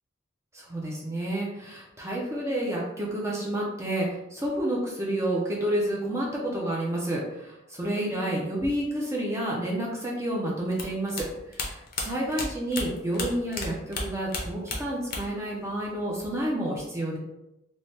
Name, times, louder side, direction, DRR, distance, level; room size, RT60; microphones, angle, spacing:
voice 1, 0.5-17.2, right 1 dB, 15° right, -3 dB, 0.4 m, -30 dB
sound 1, 10.7-13.7 13.9-15.4 15.7-16.5, left 3 dB, 50° left, 0.5 m, -33 dB
3.1 x 2.1 x 2.7 m, 0.92 s
head